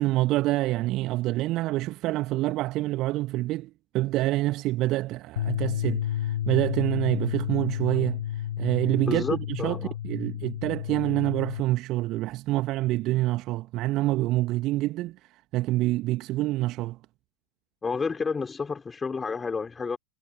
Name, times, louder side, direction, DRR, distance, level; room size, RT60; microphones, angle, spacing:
voice 1, 0.0-8.3 8.6-17.0, right 17 dB, 35° right, 2.0 m, -27 dB
sound 1, 5.4-11.6, left 11 dB, 60° left, 0.8 m, -31 dB
voice 2, 9.1-9.9 17.8-20.0, left 5 dB, 15° left, 4.4 m, -30 dB
figure-of-eight pair, 90°, 0 cm